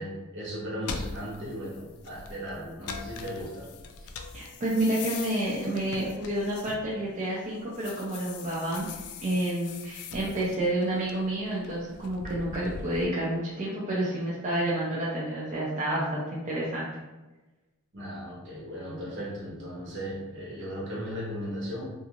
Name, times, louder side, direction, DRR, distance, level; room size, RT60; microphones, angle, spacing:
voice 1, 0.0-3.7 17.9-21.9, equal, 60° right, -4 dB, 0.9 m, -36 dB
sound 1, 0.8-7.3 7.6-13.1, left 5 dB, 90° left, 0.3 m, -42 dB
voice 2, 4.3-8.9 9.2-16.9, right 1 dB, 35° right, -6 dB, 0.5 m, -29 dB
2.6 x 2.5 x 2.9 m, 1.1 s
head